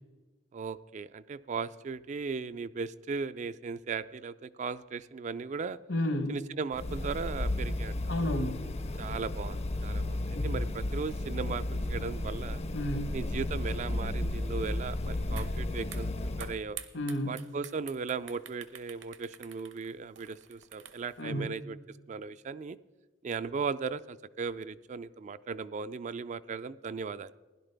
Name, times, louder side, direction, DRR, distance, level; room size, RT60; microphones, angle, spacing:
voice 1, 0.5-5.8 6.3-8.0 9.0-12.6 13.1-16.1 16.4-16.8 17.3-21.8 22.1-22.8 23.2-27.3, right 5 dB, 40° right, 14 dB, 0.3 m, -37 dB
voice 2, 5.9-6.4 8.1-8.7 12.7-13.2 16.9-17.4 21.2-21.5, left 1 dB, 70° left, 9 dB, 1.1 m, -31 dB
sound 1, 6.7-16.6, left 1 dB, 35° left, 0.5 m, -33 dB
sound 2, 15.4-15.5 15.8-21.2, right 9 dB, 65° right, 0.9 m, -47 dB
16.5 x 11.0 x 3.4 m, 1.3 s
head